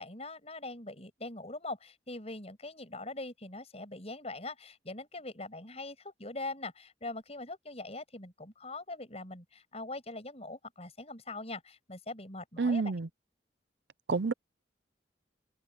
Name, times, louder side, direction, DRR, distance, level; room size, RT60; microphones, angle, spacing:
voice 1, 0.0-12.9, left 2 dB, 35° left, 7.1 m, -42 dB
voice 2, 12.6-13.1 14.1-14.3, right 4 dB, 70° right, 0.6 m, -28 dB
open air
head